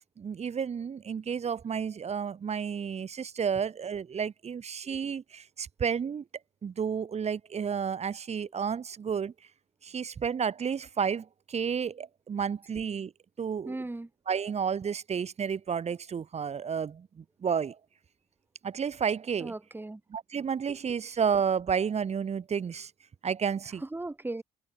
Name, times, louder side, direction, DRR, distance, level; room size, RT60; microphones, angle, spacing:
voice 1, 0.2-6.2 6.6-9.3 9.8-13.1 13.4-13.8 14.3-17.8 18.6-19.5 20.1-22.9 23.2-23.8, right 7 dB, 45° right, 3.1 m, -31 dB
voice 2, 13.6-14.1 19.4-20.0 20.7-20.8 23.8-24.4, right 2 dB, 15° right, 3.2 m, -37 dB
cardioid pair, 90°, 16 cm